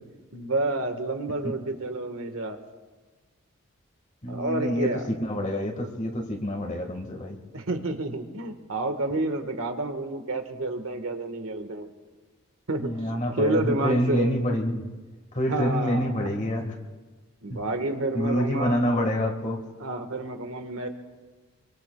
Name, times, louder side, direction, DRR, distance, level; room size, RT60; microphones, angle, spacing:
voice 1, 0.3-2.6 4.3-5.1 7.5-11.9 12.7-14.4 15.5-16.3 17.4-18.8 19.8-20.9, right 2 dB, 75° right, 6 dB, 1.5 m, -29 dB
voice 2, 4.2-7.4 12.8-14.9 15.3-16.8 17.5-17.6 18.1-19.6, equal, 35° left, 2 dB, 1.6 m, -27 dB
25.5 x 24.0 x 2.3 m, 1.3 s
head